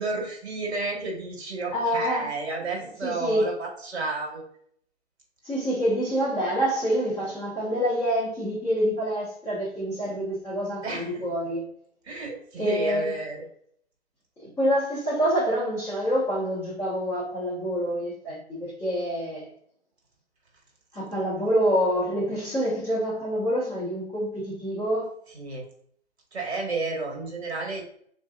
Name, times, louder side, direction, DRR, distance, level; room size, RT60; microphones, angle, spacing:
voice 1, 0.0-4.4 10.8-11.2 12.0-13.4 25.3-25.7 26.3-27.8, right 3 dB, 65° right, 1.4 m, -31 dB
voice 2, 1.7-2.3 3.0-3.5 5.4-11.6 12.6-13.1 14.4-19.5 20.9-25.1, equal, 5° left, 0.6 m, -26 dB
3.7 x 2.6 x 2.2 m
hypercardioid pair, 150°, 35 cm